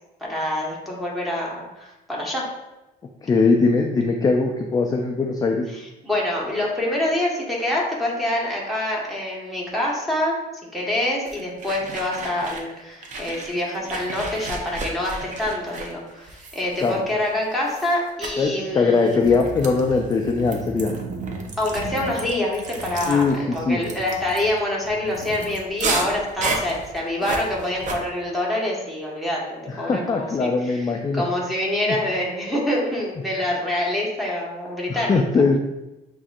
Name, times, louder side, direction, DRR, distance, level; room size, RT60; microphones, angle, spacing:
voice 1, 0.2-2.5 5.7-10.4 10.7-19.2 21.6-23.2 23.5-30.9 31.1-35.3, left 1 dB, ahead, -5 dB, 1.3 m, -26 dB
voice 2, 3.2-5.7 16.8-16.9 18.4-20.9 23.1-23.8 29.7-31.2 31.9-32.0 34.9-35.6, left 4 dB, 20° left, 2 dB, 0.4 m, -21 dB
sound 1, 11.3-12.7 13.0-17.3 17.7-17.9 18.2-18.4 19.1-28.0, right 3 dB, 45° right, 0.7 m, -32 dB
7.1 x 2.6 x 2.4 m, 0.98 s
cardioid pair, 110°, 17 cm